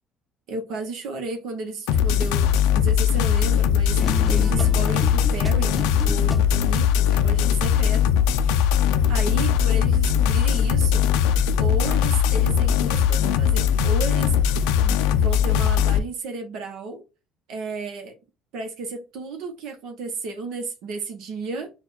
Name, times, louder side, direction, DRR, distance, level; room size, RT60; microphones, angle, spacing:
voice 1, 0.5-5.8 6.0-8.2 9.1-11.3 11.6-17.0 17.5-18.2 18.5-21.7, right 3 dB, 75° right, 0.8 m, -33 dB
sound 1, 1.9-16.0, left 8 dB, 85° left, 0.4 m, -20 dB
sound 2, 4.0-6.8, left 3 dB, 20° left, 0.6 m, -32 dB
4.2 x 2.3 x 4.0 m
supercardioid pair, 75°, 0 cm